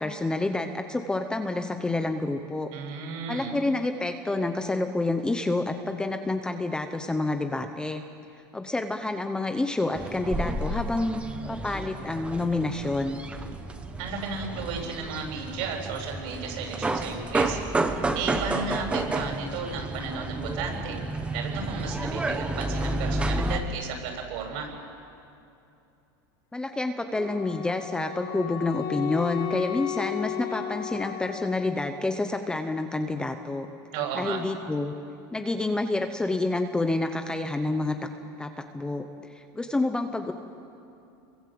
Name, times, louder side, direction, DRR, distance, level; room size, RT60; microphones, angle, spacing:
voice 1, 0.0-2.7 3.3-8.0 8.5-11.2 11.5-13.2 26.5-33.7 34.1-34.9 35.3-38.0 38.4-39.0 39.3-40.3, left 2 dB, 5° left, 6 dB, 0.9 m, -28 dB
voice 2, 2.7-3.6 14.0-17.6 18.1-21.0 21.3-24.7 33.9-34.4, right 5 dB, 55° right, 1 dB, 7.8 m, -34 dB
sound 1, 9.9-23.6, right 2 dB, 10° right, 1.3 m, -31 dB
Wind instrument woodwind instrument, 27.1-31.9, left 11 dB, 90° left, 4.8 m, -34 dB
29.5 x 23.5 x 7.8 m, 2.7 s
supercardioid pair, 160°, 12 cm